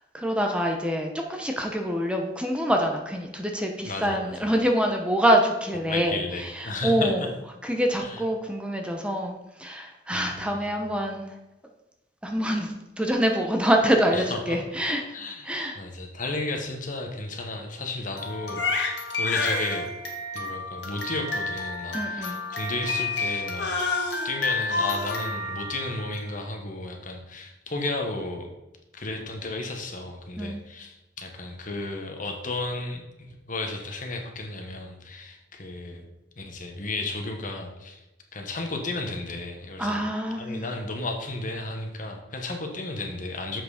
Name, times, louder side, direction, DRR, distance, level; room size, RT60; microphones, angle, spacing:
voice 1, 0.1-6.2 6.6-7.2 7.6-11.2 12.2-12.7 13.0-15.0 15.4-15.8 21.9-22.4 30.4-30.6 39.8-40.6, equal, 5° right, 2 dB, 0.9 m, -25 dB
voice 2, 3.9-4.6 5.9-7.3 8.0-8.2 10.1-10.7 14.1-14.6 15.1-19.9 20.3-23.8 24.2-28.5 28.9-36.0 36.4-38.0 38.3-40.1 40.4-43.6, left 2 dB, 50° left, 3 dB, 1.3 m, -33 dB
Crying sobbing, 18.2-26.3, left 3 dB, 75° left, 1.8 m, -29 dB
7.5 x 6.0 x 5.0 m, 1.0 s
head